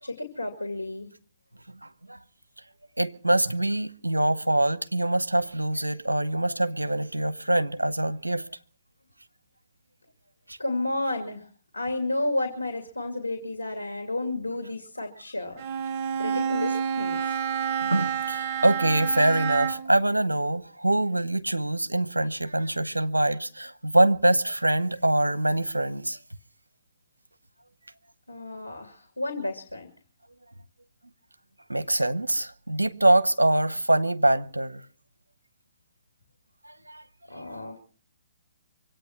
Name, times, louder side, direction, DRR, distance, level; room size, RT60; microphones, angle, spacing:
voice 1, 0.0-1.1 10.6-11.5 11.7-15.6 16.2-17.2 28.3-29.9 37.3-37.8, left 2 dB, 85° left, 2.5 m, -31 dB
voice 2, 3.0-8.5 10.5-10.6 17.8-26.2 31.7-34.8 36.6-37.0, right 1 dB, 90° right, 0.9 m, -24 dB
Bowed string instrument, 15.6-20.0, right 7 dB, 40° right, 0.9 m, -29 dB
24.5 x 8.9 x 6.0 m
figure-of-eight pair, 130°, 0 cm